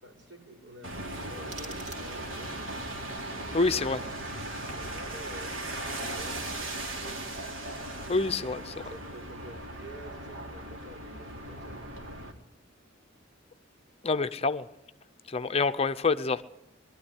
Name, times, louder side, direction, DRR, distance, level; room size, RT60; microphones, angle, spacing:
voice 1, 0.0-2.7 4.7-6.4 8.8-11.9, equal, 65° right, 6.0 m, -49 dB
sound 1, 0.8-12.3, right 1 dB, 80° right, 3.4 m, -38 dB
sound 2, 1.4-2.5, right 3 dB, 35° right, 3.1 m, -48 dB
voice 2, 3.5-4.0 8.1-8.7 14.0-14.7 15.3-16.4, left 3 dB, 30° left, 0.6 m, -27 dB
21.5 x 12.5 x 10.0 m
head